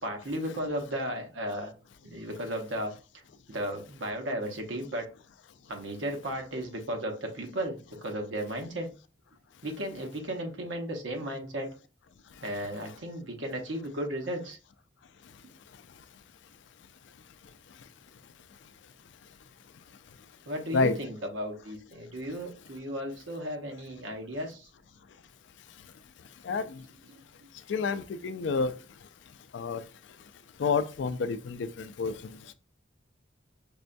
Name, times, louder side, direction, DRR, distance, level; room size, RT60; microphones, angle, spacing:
voice 1, 0.0-1.7 2.0-2.9 3.5-5.0 5.7-8.9 9.6-11.7 12.4-14.6 20.5-24.7, equal, 85° right, 1.0 m, -35 dB
voice 2, 26.4-26.8 27.7-28.7 29.5-29.8 30.6-32.5, left 4 dB, 70° left, 0.4 m, -29 dB
5.3 x 2.2 x 2.6 m
head